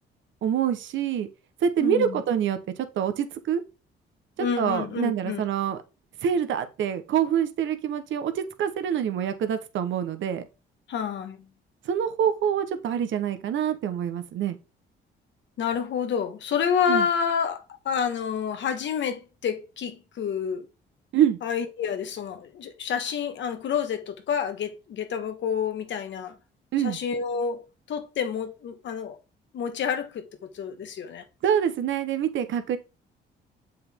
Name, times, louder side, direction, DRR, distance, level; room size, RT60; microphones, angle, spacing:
voice 1, 0.4-1.3 1.6-2.6 2.9-3.6 4.4-5.8 6.2-10.4 11.8-14.6 16.9-17.1 21.1-21.4 26.7-27.0 31.4-32.8, right 9 dB, 75° right, 1.0 m, -26 dB
voice 2, 1.8-2.2 4.4-5.4 10.9-11.5 15.6-20.7 21.4-26.4 26.8-29.2 29.5-30.3 30.5-31.2, left 7 dB, 70° left, 1.3 m, -29 dB
7.6 x 5.6 x 3.6 m
cardioid pair, 90°, 20 cm